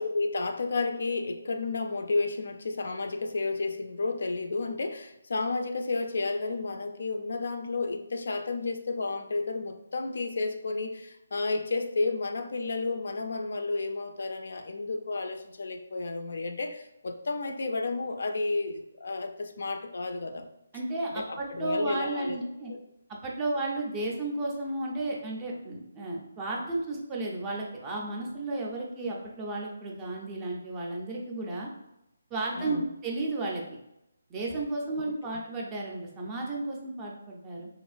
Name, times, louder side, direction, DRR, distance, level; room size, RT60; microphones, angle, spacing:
voice 1, 0.0-20.5 21.1-22.4 22.7-22.8 32.6-32.9, left 3 dB, 65° left, 6 dB, 0.3 m, -32 dB
voice 2, 20.7-22.7 23.2-31.7 32.3-33.6 34.3-37.7, right 2 dB, 15° right, -1 dB, 0.4 m, -33 dB
2.9 x 2.4 x 2.4 m, 0.86 s
hypercardioid pair, 165°, 0 cm